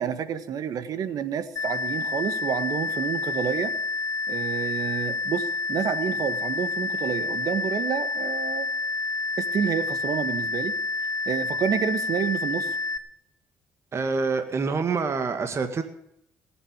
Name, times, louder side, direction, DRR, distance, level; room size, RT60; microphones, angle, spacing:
voice 1, 0.0-3.7 4.3-8.7 9.4-12.7, right 8 dB, 65° right, 11 dB, 1.6 m, -29 dB
sound 1, 1.6-13.0, left 3 dB, 45° left, 2.2 m, -29 dB
voice 2, 13.9-15.8, right 4 dB, 45° right, 7 dB, 1.9 m, -26 dB
18.5 x 8.1 x 8.0 m, 0.76 s
cardioid pair, 75°, 7 cm